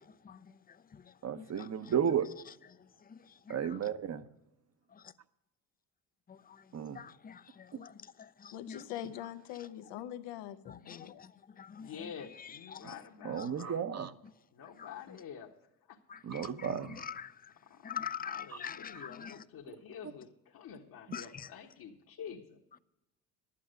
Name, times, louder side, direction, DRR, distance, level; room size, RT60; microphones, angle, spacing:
voice 1, 1.2-2.3 3.5-4.3 6.7-7.0 7.7-7.8 13.2-14.1 16.2-17.1 18.5-18.6 18.9-19.1 20.0-20.1, right 8 dB, 40° right, 0.9 m, -33 dB
voice 2, 6.9-7.9 8.4-8.8 10.7-11.3 11.6-11.9 12.7-12.8 13.4-13.5 14.8-14.9 16.1-16.4 17.0-17.3 17.8-19.4 21.1-21.5, left 8 dB, 25° left, 0.5 m, -43 dB
voice 3, 8.5-11.2, left 11 dB, 80° left, 0.9 m, -43 dB
voice 4, 11.8-13.8 14.5-15.5 15.9-16.0 17.7-22.6, left 7 dB, 60° left, 1.4 m, -48 dB
11.5 x 8.6 x 6.4 m
supercardioid pair, 75°, 40 cm